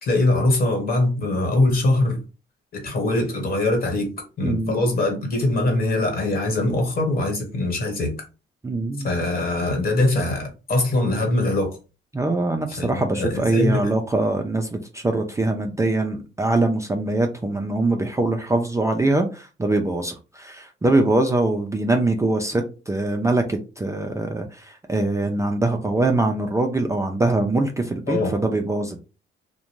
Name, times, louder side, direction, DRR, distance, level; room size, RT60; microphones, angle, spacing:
voice 1, 0.0-2.2 2.7-4.1 4.4-8.1 9.0-11.8 12.8-13.9 28.1-28.4, left 2 dB, 50° left, 2 dB, 1.3 m, -22 dB
voice 2, 4.4-4.8 8.6-9.1 12.1-29.0, right 2 dB, 15° right, 3 dB, 0.4 m, -23 dB
2.5 x 2.1 x 3.0 m, 0.31 s
cardioid pair, 90°, 20 cm